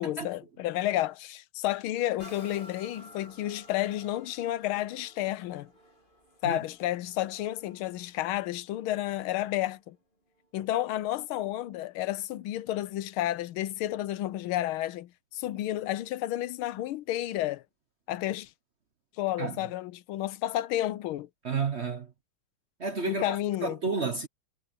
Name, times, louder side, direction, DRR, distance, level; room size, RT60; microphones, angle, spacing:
voice 1, 0.0-5.7 6.4-10.0 10.5-17.6 18.1-18.5 19.2-21.3 23.1-23.8, left 14 dB, 85° left, 1.5 m, -31 dB
sound 1, 2.2-9.8 10.4-10.5, equal, 25° left, 3.5 m, -54 dB
voice 2, 21.4-22.1 22.8-24.3, right 4 dB, 45° right, 0.9 m, -31 dB
omnidirectional pair, 2.3 m